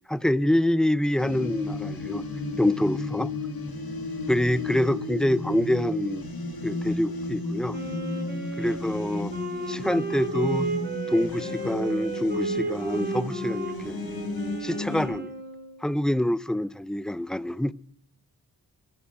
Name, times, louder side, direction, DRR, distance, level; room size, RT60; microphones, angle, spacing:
voice 1, 0.1-2.2 2.6-3.3 4.3-6.3 6.6-7.8 8.6-9.3 9.7-10.7 11.1-14.0 14.6-15.3 15.8-17.7, left 1 dB, ahead, 0.5 m, -26 dB
sound 1, 1.2-15.1, left 2 dB, 70° left, 3.0 m, -33 dB
Wind instrument woodwind instrument, 7.7-15.8, right 3 dB, 25° right, 5.1 m, -34 dB
12.0 x 9.6 x 7.7 m
cardioid pair, 55°, 38 cm